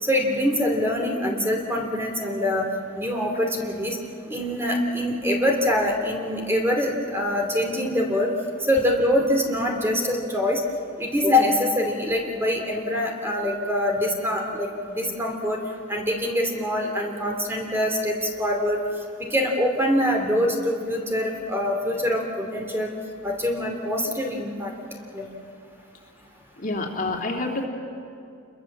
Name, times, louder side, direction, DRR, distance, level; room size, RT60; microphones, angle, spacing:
voice 1, 0.0-2.7 2.9-4.0 4.3-8.3 8.6-10.6 11.0-15.6 15.9-18.8 19.2-22.9 23.2-24.7 25.1-25.3, left 1 dB, 10° right, 1 dB, 2.7 m, -24 dB
voice 2, 26.6-27.7, left 2 dB, 40° left, 1 dB, 2.9 m, -27 dB
29.0 x 22.0 x 7.4 m, 2.5 s
head